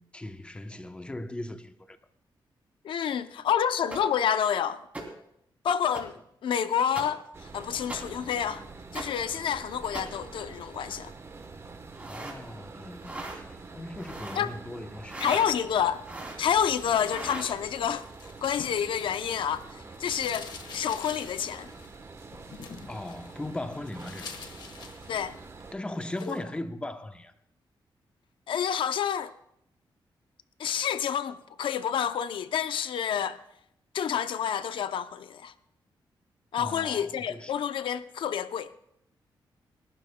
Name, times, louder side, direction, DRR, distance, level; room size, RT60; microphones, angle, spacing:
voice 1, 0.0-2.0 12.1-15.4 22.9-24.3 25.7-27.3 36.6-37.5, left 1 dB, 10° left, 0.8 m, -38 dB
voice 2, 2.8-4.8 5.6-8.6 8.9-11.1 14.4-14.5 15.2-16.0 16.4-18.0 18.4-21.7 25.1-25.4 26.3-26.4 28.5-29.3 30.6-33.4 33.9-35.5 36.5-38.7, left 8 dB, 80° left, 0.6 m, -29 dB
sound 1, 3.9-4.0 4.9-5.0 5.9-6.0 6.9-7.0 7.9-8.0 8.9-9.0 9.9-10.0 11.9-12.4 13.0-13.4 13.9-14.4 15.0-15.5 16.0-16.4 17.0-17.5, right 2 dB, 15° right, 2.8 m, -38 dB
sound 2, 7.3-25.7, right 3 dB, 30° right, 1.0 m, -46 dB
sound 3, 16.5-19.6 19.9-25.6 26.0-26.4, left 5 dB, 65° left, 1.3 m, -47 dB
28.5 x 12.0 x 2.2 m
wide cardioid pair, 135°, 9 cm